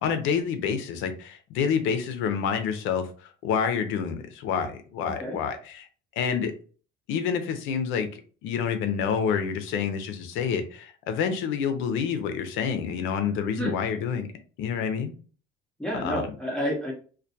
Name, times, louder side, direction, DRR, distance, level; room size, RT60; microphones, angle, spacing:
voice 1, 0.0-5.9 6.2-6.5 7.1-14.3 14.6-15.1 16.0-16.3, left 7 dB, 85° left, 8 dB, 0.6 m, -28 dB
voice 2, 5.0-5.4 13.6-13.8 15.8-16.9, equal, 5° left, -3 dB, 0.5 m, -30 dB
2.2 x 2.2 x 2.6 m, 0.39 s
cardioid pair, 165°, 20 cm